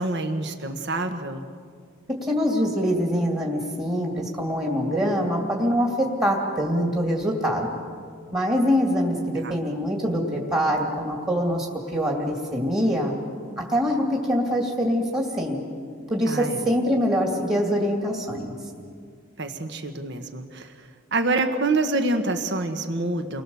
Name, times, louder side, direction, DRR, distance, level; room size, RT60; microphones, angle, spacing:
voice 1, 0.0-1.4 9.4-9.5 16.3-16.6 19.4-23.4, right 2 dB, 50° right, 6 dB, 1.4 m, -27 dB
voice 2, 2.2-7.8 8.3-11.7 11.9-13.1 13.6-15.6 16.1-18.5, equal, 20° right, -1 dB, 2.5 m, -24 dB
30.0 x 22.0 x 7.1 m, 2.2 s
head